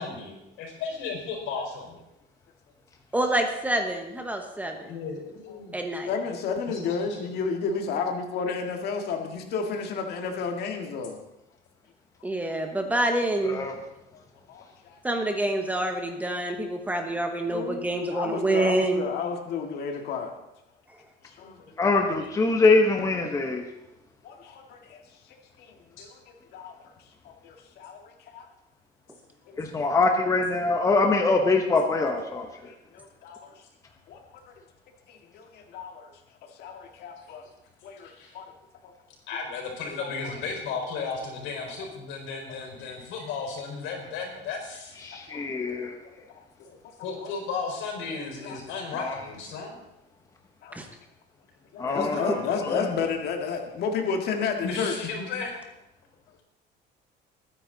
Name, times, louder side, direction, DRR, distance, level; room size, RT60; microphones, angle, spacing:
voice 1, 0.0-2.0 4.9-5.8 6.7-7.3 9.0-9.4 17.1-17.2 21.4-22.3 26.0-26.1 29.5-29.8 38.1-38.4 39.3-45.0 47.0-49.8 54.6-55.5, left 4 dB, 80° left, 2 dB, 4.7 m, -35 dB
voice 2, 3.1-4.9 5.7-6.1 12.2-13.6 15.0-19.1 50.7-50.9 51.9-52.4, right 1 dB, 10° right, 4 dB, 1.1 m, -27 dB
voice 3, 6.1-11.2 14.1-14.2 14.5-15.0 16.4-16.5 17.5-20.3 21.3-21.5 22.8-22.9 24.2-25.0 25.6-26.9 27.2-28.5 29.5-29.6 32.6-33.5 34.1-34.2 34.5-34.6 35.1-36.1 36.6-37.4 37.8-38.5 38.8-38.9 40.0-40.3 45.1-45.4 46.3-47.3 48.4-48.6 50.6-50.8 51.7-55.1, left 5 dB, 55° left, 3 dB, 1.9 m, -32 dB
voice 4, 13.4-13.7 21.8-23.6 29.6-32.5 45.0-45.9 49.0-49.1 51.8-52.9, left 3 dB, 15° left, 3 dB, 1.0 m, -23 dB
22.0 x 9.8 x 3.9 m, 0.89 s
cardioid pair, 175°, 20 cm